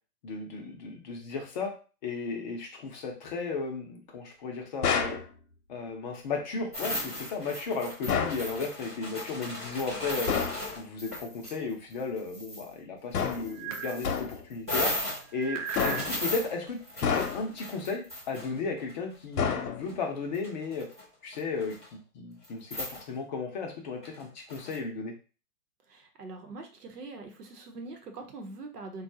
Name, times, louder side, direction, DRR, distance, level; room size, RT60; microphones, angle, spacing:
voice 1, 0.2-1.7 2.0-5.2 5.7-10.3 10.8-14.9 15.3-20.9 21.2-25.1, left 4 dB, 30° left, 2 dB, 0.6 m, -35 dB
sound 1, 4.8-5.3 8.1-8.5 10.3-10.7 13.1-13.6 14.0-14.4 15.8-16.2 17.0-17.6 19.4-20.0, left 6 dB, 75° left, 0.8 m, -29 dB
sound 2, 6.7-11.5 11.9-12.7 13.1-18.9 19.9-20.0 20.3-21.0 21.3-21.8 22.4-22.5 22.7-23.0 24.0-24.8, left 1 dB, 10° right, 0.3 m, -37 dB
sound 3, 13.5-14.0 15.3-16.1, right 8 dB, 55° right, 0.6 m, -36 dB
voice 2, 25.9-29.0, right 3 dB, 85° right, 5 dB, 1.0 m, -43 dB
3.9 x 2.3 x 2.7 m, 0.35 s
hypercardioid pair, 135°, 46 cm